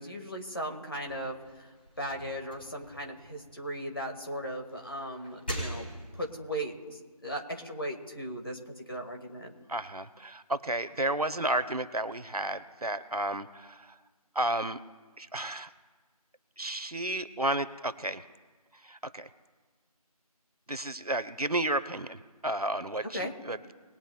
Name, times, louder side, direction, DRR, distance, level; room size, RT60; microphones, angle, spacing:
voice 1, 0.0-1.7 2.0-5.9 6.1-9.5 23.1-23.3, equal, 35° left, 1 dB, 1.8 m, -37 dB
sound 1, 1.1-4.1 4.6-6.4, right 1 dB, 15° left, 2.5 m, -42 dB
voice 2, 9.7-14.0 14.3-14.8 15.2-15.7 16.6-18.2 18.8-19.3 20.7-23.7, right 1 dB, 75° right, 13 dB, 0.9 m, -32 dB
21.0 x 11.0 x 2.3 m, 1.4 s
figure-of-eight pair, 175°, 20 cm